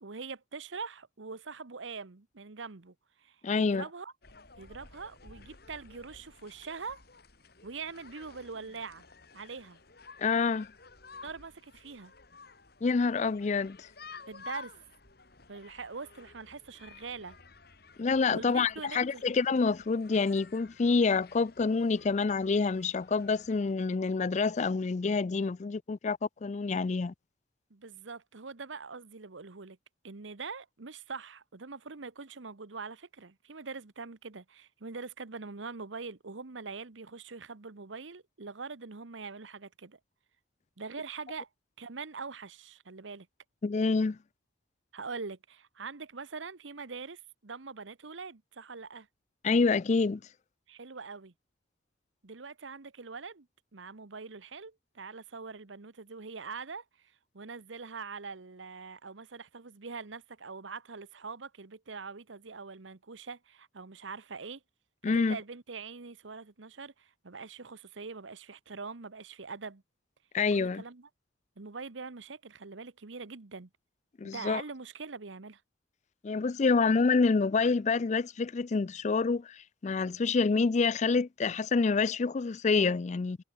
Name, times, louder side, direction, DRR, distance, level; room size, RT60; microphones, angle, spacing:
voice 1, 0.0-4.1 4.6-7.0 7.6-9.0 9.3-9.8 11.1-12.1 14.3-14.7 15.5-17.4 18.3-19.2 27.7-29.8 30.0-40.0 40.8-41.5 41.8-43.3 44.9-49.1 50.7-51.3 52.2-53.5 53.7-64.6 65.0-69.8 70.5-71.1 71.6-73.7 74.2-75.6, right 4 dB, 85° right, 1.1 m, -43 dB
voice 2, 3.4-3.8 10.2-10.7 12.8-13.9 18.0-27.1 43.6-44.2 49.4-50.2 65.0-65.4 70.3-70.8 74.2-74.6 76.2-83.4, left 4 dB, 40° left, 0.4 m, -27 dB
sound 1, 4.2-23.7, left 4 dB, 55° left, 3.3 m, -53 dB
head